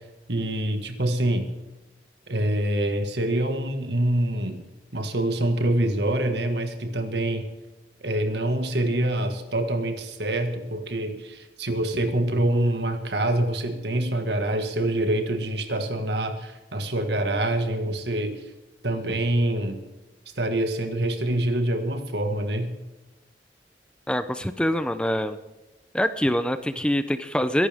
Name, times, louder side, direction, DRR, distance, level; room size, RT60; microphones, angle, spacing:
voice 1, 0.3-1.5 2.3-4.6 4.9-7.4 8.0-18.4 18.8-19.8 20.4-22.8, right 1 dB, 70° right, 7 dB, 1.8 m, -25 dB
voice 2, 24.1-25.4 25.9-27.7, equal, 5° left, 11 dB, 0.6 m, -24 dB
22.5 x 11.5 x 3.6 m, 1.1 s
head